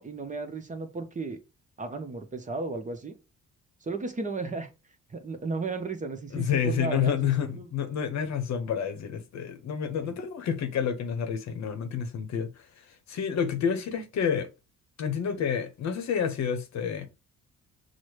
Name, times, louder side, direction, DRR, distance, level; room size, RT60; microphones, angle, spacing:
voice 1, 0.0-1.4 1.8-3.1 3.8-4.7 5.1-7.7 10.0-10.1, right 3 dB, 25° right, 0.8 m, -34 dB
voice 2, 6.3-14.5 15.0-17.1, left 7 dB, 65° left, 0.8 m, -29 dB
6.1 x 2.1 x 3.1 m
cardioid pair, 90°, 30 cm